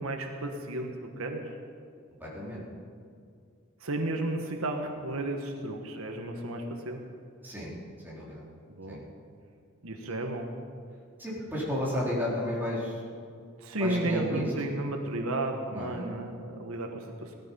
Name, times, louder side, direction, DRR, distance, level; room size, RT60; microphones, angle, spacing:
voice 1, 0.0-1.4 3.8-7.0 8.7-9.0 9.8-10.5 13.6-17.4, right 2 dB, 80° right, 4 dB, 1.4 m, -33 dB
voice 2, 2.2-2.6 7.4-7.7 8.0-8.4 8.9-9.0 11.2-13.1 13.8-14.5 15.7-16.1, left 1 dB, 10° right, -6 dB, 4.0 m, -32 dB
18.0 x 13.0 x 5.6 m, 2.3 s
head